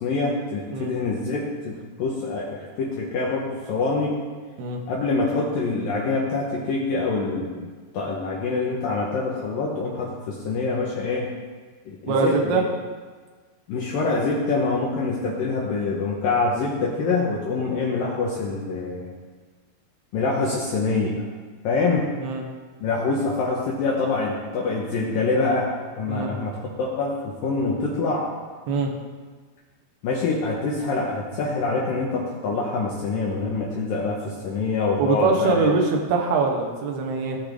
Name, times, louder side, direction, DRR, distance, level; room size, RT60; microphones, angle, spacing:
voice 1, 0.0-4.2 4.9-7.7 7.9-11.3 11.9-12.6 13.7-19.1 20.1-21.3 21.6-22.1 22.8-28.3 30.0-35.7, left 3 dB, 70° left, -3 dB, 2.2 m, -25 dB
voice 2, 12.1-12.6 22.2-22.4 26.1-26.3 28.7-28.9 35.0-37.4, right 4 dB, 70° right, 1 dB, 2.9 m, -23 dB
18.0 x 6.0 x 3.5 m, 1.5 s
omnidirectional pair, 5.4 m